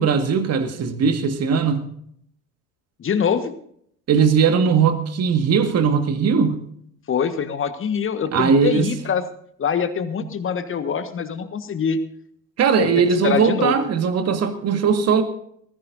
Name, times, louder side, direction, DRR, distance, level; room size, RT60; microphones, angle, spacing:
voice 1, 0.0-1.8 4.1-6.6 8.3-8.9 12.6-15.2, right 6 dB, 30° right, 8 dB, 1.9 m, -19 dB
voice 2, 3.0-3.5 7.1-9.2 9.6-12.0 12.8-13.8, left 7 dB, 25° left, 10 dB, 1.5 m, -24 dB
19.5 x 15.5 x 2.7 m, 0.66 s
figure-of-eight pair, 70°, 48 cm